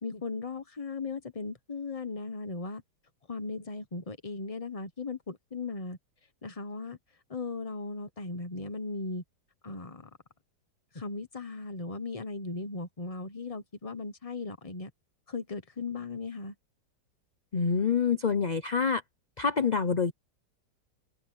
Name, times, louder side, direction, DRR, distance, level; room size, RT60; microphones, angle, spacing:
voice 1, 0.0-2.8 3.3-6.0 6.4-7.0 7.3-9.2 9.6-10.1 10.9-14.9 15.3-16.5, left 3 dB, 25° left, 1.1 m, -37 dB
voice 2, 17.5-19.0 19.4-20.1, left 5 dB, 40° left, 0.6 m, -26 dB
omnidirectional pair, 1.9 m